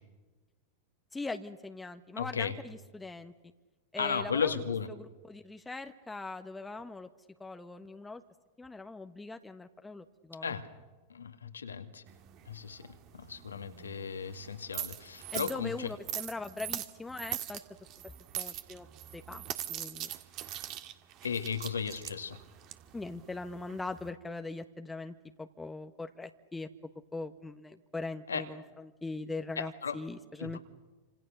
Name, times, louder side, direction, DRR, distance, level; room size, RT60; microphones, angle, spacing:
voice 1, 1.1-3.3 3.9-4.6 5.0-7.1 7.4-8.2 8.6-10.6 15.3-17.6 18.3-18.9 19.1-20.1 22.9-26.7 27.1-30.6, left 3 dB, 10° left, 7 dB, 1.2 m, -41 dB
voice 2, 2.2-2.6 4.0-4.9 10.4-10.7 11.1-12.0 12.5-12.9 13.1-15.9 21.2-22.4 28.3-28.5 29.6-30.0 30.4-30.6, left 6 dB, 85° left, 8 dB, 2.2 m, -35 dB
sound 1, 12.1-24.1, right 12 dB, 45° right, 1.9 m, -42 dB
29.0 x 26.5 x 6.7 m, 1.2 s
hypercardioid pair, 95°, 0 cm